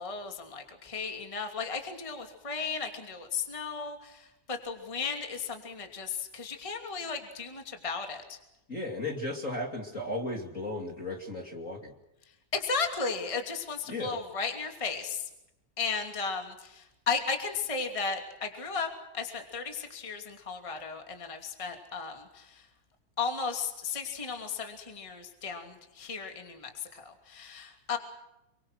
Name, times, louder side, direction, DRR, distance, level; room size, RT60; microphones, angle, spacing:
voice 1, 0.0-8.4 12.5-15.3 15.8-18.9 19.1-22.6 23.2-28.0, left 5 dB, 10° left, 4 dB, 2.5 m, -35 dB
voice 2, 8.7-11.9 13.9-14.2, left 2 dB, 25° left, 2 dB, 2.7 m, -35 dB
28.5 x 24.0 x 6.3 m, 0.88 s
omnidirectional pair, 3.5 m